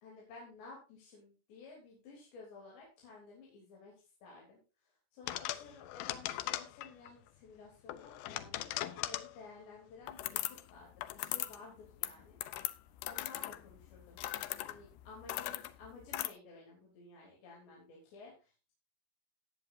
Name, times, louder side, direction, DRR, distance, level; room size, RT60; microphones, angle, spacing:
voice 1, 0.0-3.9 4.2-12.4 13.1-14.2 14.6-18.7, left 4 dB, 60° left, -3 dB, 5.3 m, -54 dB
sound 1, 5.3-7.1 7.9-9.4 10.1-10.7 11.0-11.6 11.8-16.3, left 15 dB, 85° left, 2.4 m, -39 dB
19.0 x 7.7 x 2.7 m, 0.31 s
omnidirectional pair, 5.8 m